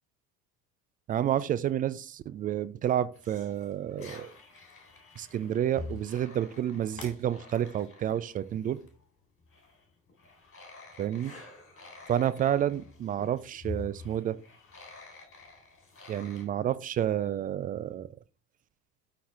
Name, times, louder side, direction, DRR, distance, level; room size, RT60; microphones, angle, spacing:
voice 1, 1.1-4.3 5.2-8.8 11.0-11.3 12.1-14.4 16.1-18.1, right 10 dB, 20° right, 0.3 m, -30 dB
sound 1, 3.1-9.1 9.4-16.4, left 3 dB, 25° left, 3.8 m, -47 dB
12.5 x 4.5 x 3.5 m
figure-of-eight pair, 60°, 47 cm